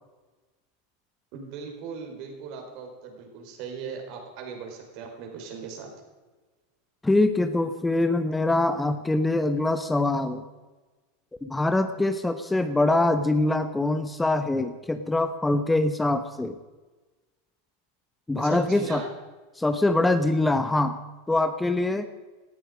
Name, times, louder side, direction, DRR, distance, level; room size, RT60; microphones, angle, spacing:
voice 1, 1.3-5.9 18.4-19.1, right 5 dB, 55° right, 3 dB, 4.7 m, -38 dB
voice 2, 7.0-10.4 11.4-16.6 18.3-19.0 19.6-21.0 21.3-22.1, left 2 dB, 10° left, 9 dB, 1.0 m, -24 dB
18.5 x 14.0 x 5.2 m, 1.2 s
hypercardioid pair, 85°, 0 cm